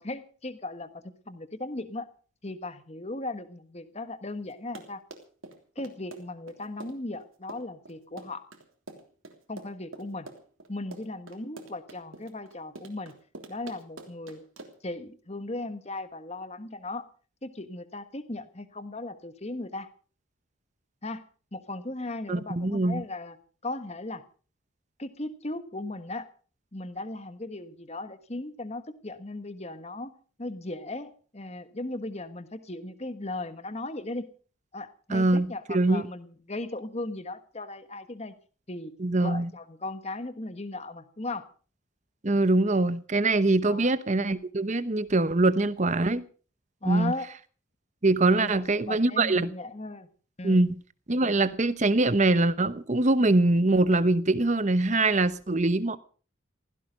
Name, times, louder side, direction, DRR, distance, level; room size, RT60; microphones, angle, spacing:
voice 1, 0.0-2.1 2.4-5.0 5.7-8.4 9.5-10.3 10.7-13.1 13.5-14.4 14.8-17.1 17.4-19.9 21.0-21.2 21.5-23.4 23.6-24.2 25.0-26.3 26.7-30.1 30.4-34.3 34.7-38.3 38.7-38.9 39.2-41.5 43.6-43.9 46.8-47.3 48.4-50.1 50.4-50.6, left 2 dB, 30° left, 1.3 m, -37 dB
Run, 4.5-14.9, right 2 dB, 75° right, 3.2 m, -46 dB
voice 2, 22.3-23.0 35.1-36.0 39.0-39.5 42.2-46.2 46.9-47.1 48.0-49.5 50.4-50.7 51.1-56.0, right 2 dB, 35° right, 0.9 m, -23 dB
16.0 x 16.0 x 5.1 m
head